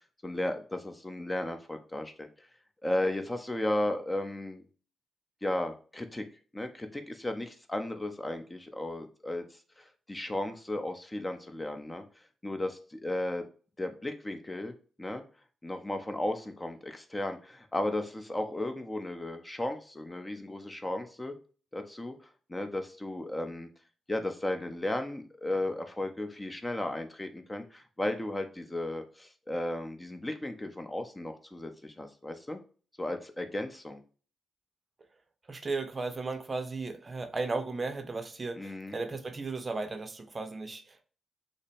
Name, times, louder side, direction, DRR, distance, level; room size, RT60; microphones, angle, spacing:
voice 1, 0.2-2.3 2.8-4.6 5.4-6.2 6.5-9.4 9.8-12.0 12.4-13.4 13.8-15.2 15.6-21.3 21.7-22.1 22.5-23.7 24.1-32.6 33.0-34.0 38.6-38.9, left 1 dB, 20° left, 0.8 m, -35 dB
voice 2, 35.5-41.0, right 3 dB, 40° right, 0.6 m, -35 dB
6.2 x 2.1 x 3.5 m
hypercardioid pair, 40°, 0 cm